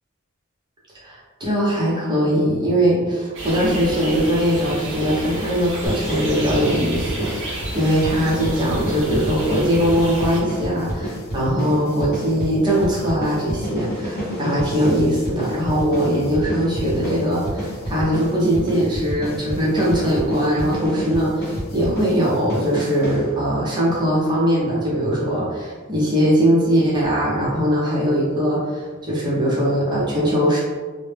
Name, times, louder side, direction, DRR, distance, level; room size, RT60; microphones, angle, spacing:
voice 1, 1.0-30.6, equal, 20° right, -6 dB, 0.6 m, -21 dB
sound 1, 3.4-10.4, right 1 dB, 60° right, 0.6 m, -31 dB
sound 2, 5.9-23.6, equal, 45° left, 0.7 m, -30 dB
2.1 x 2.0 x 3.2 m, 1.4 s
head